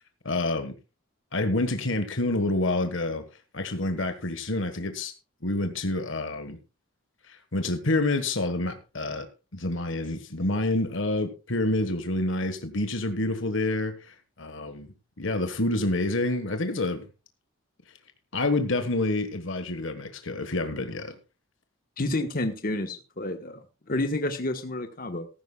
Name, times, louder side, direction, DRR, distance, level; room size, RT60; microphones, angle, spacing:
voice 1, 0.2-0.7 1.3-3.2 3.5-5.1 5.4-6.6 7.3-9.3 9.5-17.0 18.3-21.2, left 2 dB, 65° left, 9 dB, 1.5 m, -28 dB
voice 2, 22.0-23.6 23.9-25.3, left 2 dB, 45° left, 6 dB, 1.2 m, -29 dB
15.5 x 14.5 x 2.3 m, 0.30 s
head